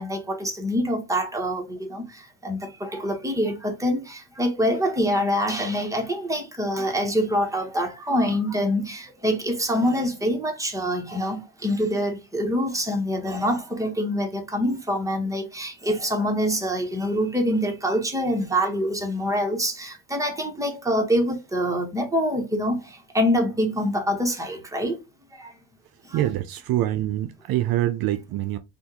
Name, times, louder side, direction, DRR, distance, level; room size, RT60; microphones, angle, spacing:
voice 1, 0.0-25.0 25.3-25.5 26.0-26.2, equal, 10° right, 1.1 m, -25 dB
voice 2, 26.1-28.6, right 13 dB, 60° right, 0.5 m, -25 dB
3.5 x 2.4 x 2.8 m
cardioid pair, 90°, 40 cm